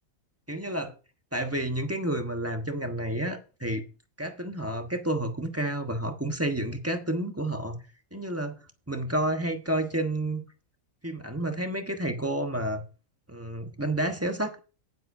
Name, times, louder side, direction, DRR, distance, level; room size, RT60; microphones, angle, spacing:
voice 1, 0.5-0.9 1.3-3.8 4.2-7.8 8.1-8.6 8.9-10.4 11.0-12.8 13.3-14.6, right 1 dB, 10° right, 1.2 m, -30 dB
18.5 x 7.5 x 2.8 m
omnidirectional pair, 1.5 m